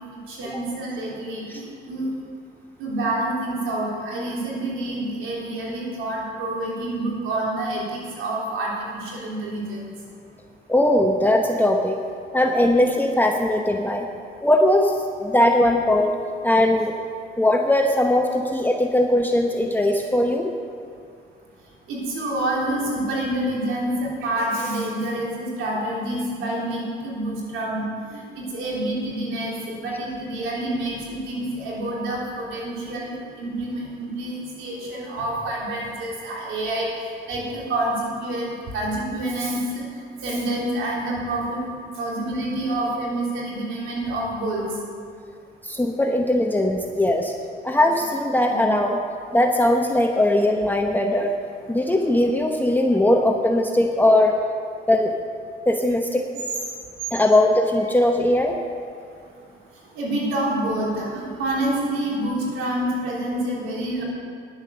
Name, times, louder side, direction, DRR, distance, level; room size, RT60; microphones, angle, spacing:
voice 1, 0.3-2.1 2.8-9.9 21.9-36.9 37.3-39.8 40.2-41.6 42.0-44.6 48.4-48.7 60.0-64.0, right 1 dB, 90° right, -4 dB, 3.5 m, -27 dB
voice 2, 10.7-12.0 12.3-14.1 14.4-15.0 15.2-16.2 16.4-17.0 17.4-20.5 45.6-47.3 47.6-49.0 49.3-51.3 51.7-54.4 54.9-55.1 55.7-56.2 57.1-58.6, left 1 dB, 10° left, 2 dB, 0.9 m, -19 dB
10.5 x 9.6 x 6.9 m, 2.3 s
cardioid pair, 90°, 20 cm